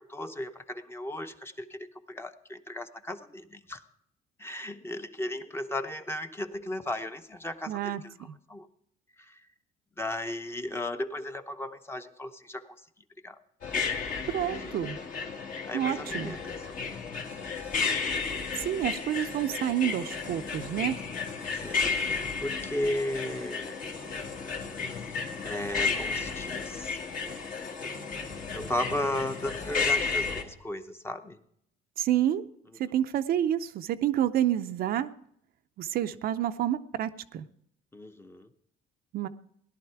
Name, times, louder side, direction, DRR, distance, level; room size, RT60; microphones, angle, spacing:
voice 1, 0.0-3.8 4.4-8.7 9.2-9.4 10.0-12.8 13.2-13.4 14.4-14.8 15.7-16.8 18.9-19.0 20.7-20.8 21.6-23.8 25.0-27.0 27.6-27.8 28.5-31.4 37.9-38.5, left 1 dB, 15° left, 8 dB, 0.8 m, -36 dB
voice 2, 7.7-8.3 14.3-15.0 15.7-16.4 18.6-21.0 32.0-32.4 32.8-35.1 35.8-37.5 39.1-39.3, right 11 dB, 60° right, 10 dB, 0.6 m, -29 dB
sound 1, 13.6-30.4, left 5 dB, 55° left, 2.0 m, -33 dB
17.0 x 11.0 x 4.6 m, 0.70 s
cardioid pair, 110°, 17 cm